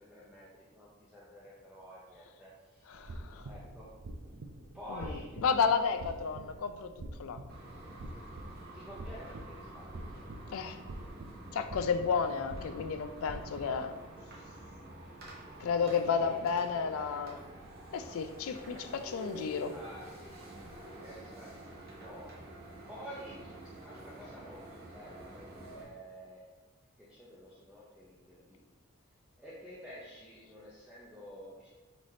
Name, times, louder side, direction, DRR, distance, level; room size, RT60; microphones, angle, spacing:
voice 1, 0.0-3.1 3.4-3.9 4.7-5.5 6.1-6.6 8.7-10.6 14.8-14.9 15.8-16.4 16.8-16.9 17.1-17.2 18.7-18.8 19.2-20.5 21.0-22.3 22.9-23.4 23.8-26.4 27.0-28.7 29.4-31.7, equal, 5° right, -8 dB, 0.6 m, -50 dB
voice 2, 2.9-3.5 4.9-6.9 7.2-7.4 10.5-10.8 11.5-14.0 15.6-17.4 17.9-19.8, left 6 dB, 75° left, 9 dB, 0.3 m, -32 dB
sound 1, 2.9-13.8, right 2 dB, 60° right, 0.4 m, -46 dB
sound 2, 7.5-25.8, right 1 dB, 45° right, 1.0 m, -49 dB
3.9 x 3.2 x 4.2 m, 1.2 s
head